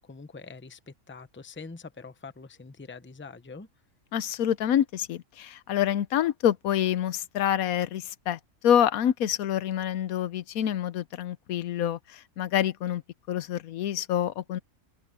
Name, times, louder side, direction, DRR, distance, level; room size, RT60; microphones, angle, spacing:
voice 1, 0.0-3.7, left 4 dB, 10° left, 0.7 m, -44 dB
voice 2, 4.1-13.0 13.3-14.6, left 10 dB, 85° left, 1.2 m, -27 dB
open air
omnidirectional pair, 1.5 m